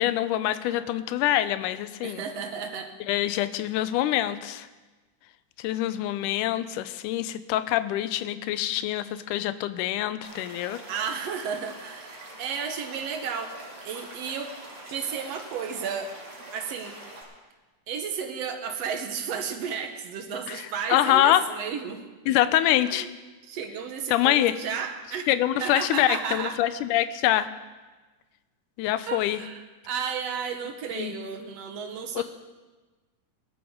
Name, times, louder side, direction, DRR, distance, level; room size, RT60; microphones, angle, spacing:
voice 1, 0.0-2.2 3.1-4.7 5.6-10.8 20.5-20.6 20.9-21.5 22.3-23.1 24.1-24.5 25.3-27.5 28.8-29.4 31.0-31.1 32.2-32.3, left 13 dB, 85° left, 13 dB, 2.1 m, -25 dB
voice 2, 2.0-2.9 10.9-13.6 13.9-14.5 14.9-16.1 16.5-17.0 17.9-22.0 22.9-23.1 23.4-25.3 25.6-26.6 29.1-32.2, right 6 dB, 65° right, 6 dB, 1.8 m, -33 dB
Stream / Liquid, 10.2-17.2, right 2 dB, 45° right, 3.8 m, -44 dB
20.0 x 12.0 x 3.7 m, 1.2 s
omnidirectional pair, 3.6 m